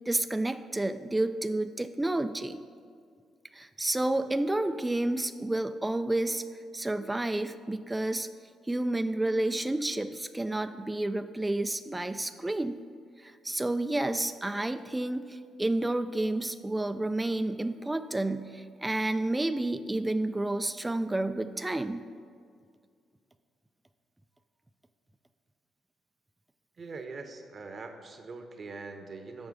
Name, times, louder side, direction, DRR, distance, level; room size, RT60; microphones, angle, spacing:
voice 1, 0.1-2.6 3.5-6.4 6.7-8.3 8.7-12.8 13.2-22.0, right 2 dB, 15° right, 10 dB, 0.3 m, -30 dB
voice 2, 26.8-29.5, right 3 dB, 45° right, 6 dB, 0.9 m, -42 dB
7.3 x 6.0 x 6.1 m, 2.1 s
cardioid pair, 90°, 0 cm